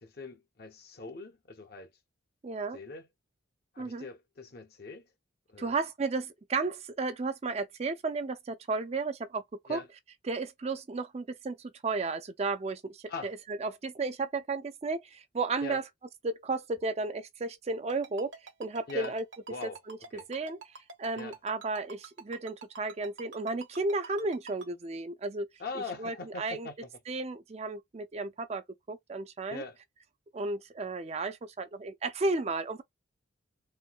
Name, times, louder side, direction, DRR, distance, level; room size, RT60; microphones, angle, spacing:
voice 1, 0.0-1.9 2.7-3.1 3.7-5.1 5.5-5.8 9.7-9.9 13.1-13.3 15.6-15.8 18.9-19.1 19.5-19.8 20.1-20.3 21.1-21.4 25.6-26.9 29.5-29.8, left 3 dB, 50° left, 0.8 m, -41 dB
voice 2, 2.4-2.8 3.8-4.1 5.6-9.4 9.7-9.8 10.3-15.8 16.2-18.3 18.6-19.2 19.6-25.5 26.0-26.7 27.1-29.6 30.3-32.8, right 3 dB, 30° right, 0.4 m, -33 dB
Ringtone, 17.9-24.7, right 4 dB, 70° right, 1.1 m, -46 dB
4.3 x 2.1 x 2.2 m
head